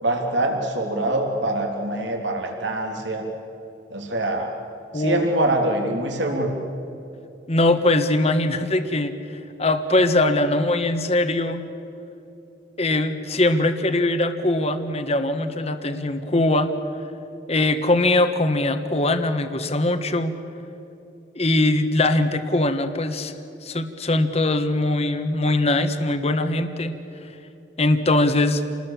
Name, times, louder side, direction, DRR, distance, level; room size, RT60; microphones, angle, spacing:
voice 1, 0.0-3.2 3.9-4.5 4.9-6.5, right 1 dB, 75° right, 1 dB, 3.3 m, -24 dB
voice 2, 4.9-5.2 7.5-11.7 12.8-16.7 17.5-20.3 21.3-23.3 23.6-26.9 27.8-28.6, left 2 dB, 35° left, 8 dB, 1.4 m, -21 dB
28.5 x 20.0 x 7.5 m, 2.9 s
head